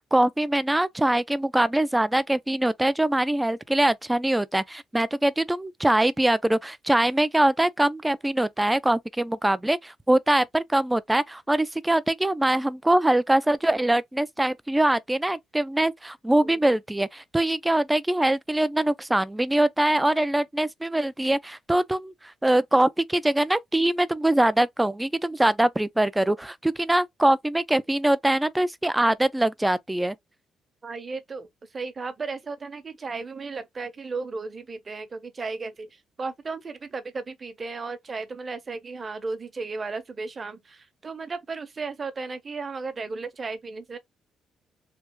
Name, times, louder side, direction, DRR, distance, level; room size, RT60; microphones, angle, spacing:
voice 1, 0.0-22.1 22.4-30.2, right 1 dB, 10° right, 0.4 m, -23 dB
voice 2, 30.8-31.5 31.7-35.9 36.2-44.0, right 4 dB, 35° right, 0.8 m, -35 dB
3.3 x 2.3 x 3.0 m
cardioid pair, 90°, 0 cm